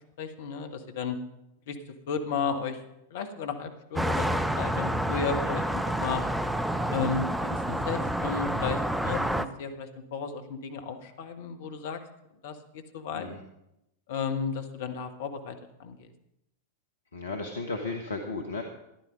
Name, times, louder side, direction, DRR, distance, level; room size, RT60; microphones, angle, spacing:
voice 1, 0.2-1.2 1.7-1.8 2.1-2.8 3.1-6.2 6.9-12.0 12.4-13.3 14.1-15.5 15.8-16.1, left 6 dB, 55° left, 6 dB, 1.4 m, -33 dB
sound 1, 4.0-9.5, right 1 dB, 5° right, 0.6 m, -29 dB
voice 2, 17.1-18.6, left 3 dB, 70° left, 3 dB, 1.3 m, -34 dB
14.5 x 11.0 x 5.1 m, 0.86 s
figure-of-eight pair, 90°, 0 cm